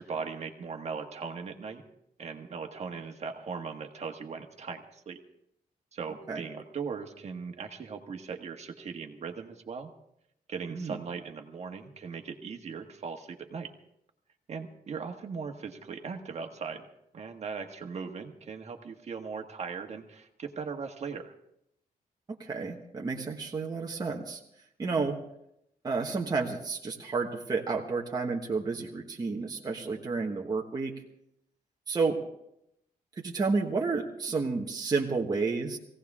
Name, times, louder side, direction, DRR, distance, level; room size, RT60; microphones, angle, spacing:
voice 1, 0.0-1.8 2.2-5.2 5.9-9.9 10.5-13.7 14.5-16.8 17.1-21.3 25.0-25.1, right 5 dB, 45° right, 4 dB, 1.5 m, -39 dB
voice 2, 22.4-24.4 24.8-25.2 25.8-30.9 31.9-32.2 33.2-35.8, right 4 dB, 25° right, -1 dB, 1.3 m, -31 dB
20.5 x 17.0 x 3.6 m, 0.78 s
wide cardioid pair, 170°, 15 cm